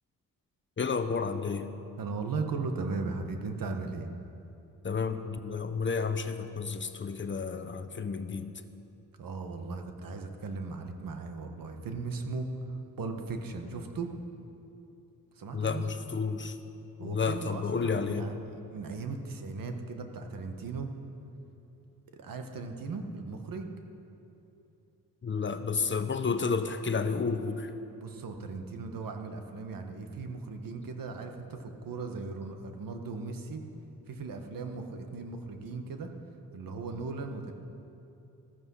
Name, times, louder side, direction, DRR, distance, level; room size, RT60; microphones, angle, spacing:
voice 1, 0.8-1.7 4.8-8.5 15.5-16.6 17.0-18.3 25.2-27.7, left 5 dB, 35° left, 9 dB, 0.8 m, -31 dB
voice 2, 2.0-4.1 9.2-14.1 15.3-15.9 17.0-20.9 22.2-23.7 28.0-33.6 34.1-36.1 36.5-37.5, right 4 dB, 70° right, 5 dB, 1.6 m, -37 dB
14.5 x 14.5 x 5.7 m, 2.8 s
cardioid pair, 95°, 35 cm